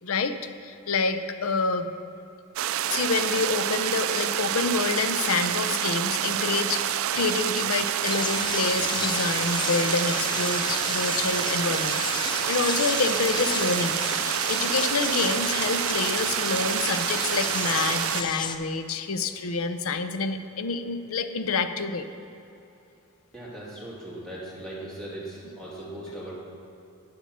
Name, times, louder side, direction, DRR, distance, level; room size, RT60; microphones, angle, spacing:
voice 1, 0.0-1.9 2.9-14.0 14.2-22.1, left 4 dB, 75° left, 9 dB, 0.6 m, -28 dB
sound 1, 2.6-18.2, right 11 dB, 70° right, 0.3 m, -28 dB
sound 2, 8.0-18.6, left 6 dB, 20° left, 0.3 m, -33 dB
voice 2, 23.3-26.4, right 1 dB, 5° left, -8 dB, 2.5 m, -38 dB
8.9 x 6.7 x 6.4 m, 2.8 s
head